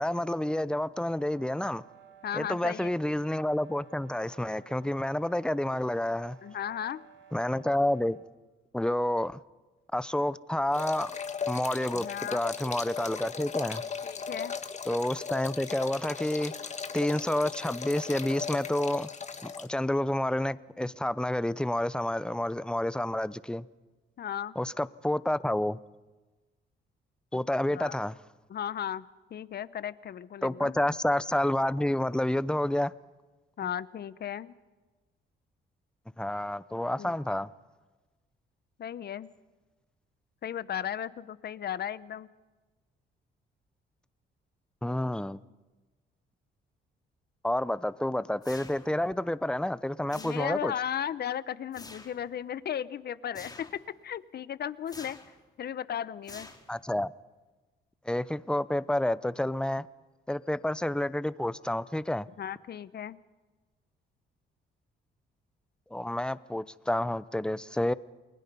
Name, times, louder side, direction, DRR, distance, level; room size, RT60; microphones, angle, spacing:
voice 1, 0.0-1.8 2.3-6.4 7.3-8.2 8.7-9.4 9.9-11.1 11.5-13.8 14.9-16.5 16.9-19.1 19.4-23.7 24.6-25.8 27.3-28.2 30.4-32.9 33.6-33.7 36.2-37.5 44.8-45.4 47.4-50.7 56.7-57.1 58.1-59.9 60.3-62.3 65.9-67.9, left 1 dB, 5° left, 17 dB, 0.7 m, -29 dB
sound 1, 0.8-8.3, right 8 dB, 65° right, 2.6 m, -56 dB
voice 2, 2.2-2.9 6.4-7.0 11.9-12.4 14.0-14.5 24.2-24.5 27.3-27.4 27.7-28.0 28.5-29.0 29.3-30.7 33.6-34.5 36.7-37.2 38.8-39.3 40.4-42.3 50.2-53.7 54.0-55.2 55.6-56.5 62.4-63.2, left 9 dB, 55° left, 17 dB, 0.9 m, -35 dB
sound 2, 10.7-19.7, left 6 dB, 35° left, 1.4 m, -37 dB
sound 3, 48.4-49.1 50.1-50.8 51.7-52.2 53.3-53.9 54.9-55.4 56.2-56.9, left 2 dB, 20° left, 4.1 m, -48 dB
29.0 x 21.0 x 5.5 m, 1.2 s
cardioid pair, 90°, 20 cm